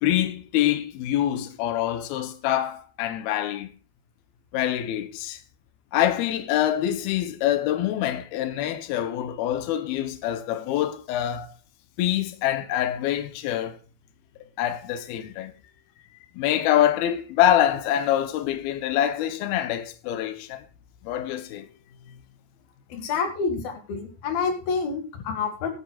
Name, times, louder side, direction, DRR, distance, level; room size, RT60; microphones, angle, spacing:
voice 1, 0.0-3.7 4.5-5.4 5.9-11.5 12.0-13.8 14.6-15.5 16.4-20.7 21.0-21.7 22.1-22.2, left 12 dB, 80° left, 2.2 m, -25 dB
voice 2, 22.9-25.7, left 5 dB, 55° left, 3.5 m, -28 dB
16.5 x 12.5 x 2.4 m
omnidirectional pair, 5.6 m